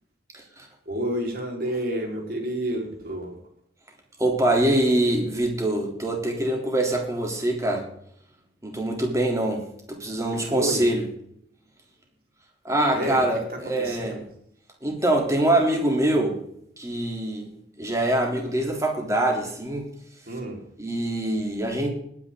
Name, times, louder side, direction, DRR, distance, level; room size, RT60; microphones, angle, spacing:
voice 1, 0.3-0.7 4.2-7.9 8.6-11.0 12.6-14.2 14.8-16.4 16.8-17.5 17.8-19.9 20.8-21.9, right 1 dB, 20° right, 1 dB, 3.5 m, -24 dB
voice 2, 0.8-3.3 10.3-10.8 12.9-13.2 13.5-14.2 20.3-20.6, equal, 55° right, 1 dB, 5.0 m, -29 dB
20.0 x 9.9 x 4.0 m, 0.68 s
head